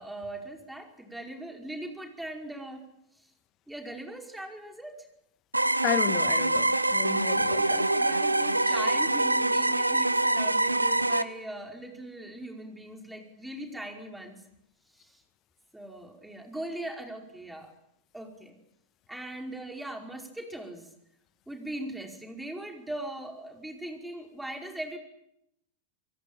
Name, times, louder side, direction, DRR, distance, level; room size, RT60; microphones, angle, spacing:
voice 1, 0.0-2.8 3.1-3.3 3.7-5.1 7.2-14.4 14.9-15.2 15.7-17.7 18.1-18.5 19.1-20.9 21.5-25.0, right 1 dB, 5° right, 5.1 m, -40 dB
sound 1, 5.5-11.2, right 2 dB, 85° right, 1.1 m, -25 dB
voice 2, 5.8-7.8, left 12 dB, 35° left, 1.6 m, -33 dB
26.5 x 23.0 x 9.0 m
figure-of-eight pair, 90°, 0 cm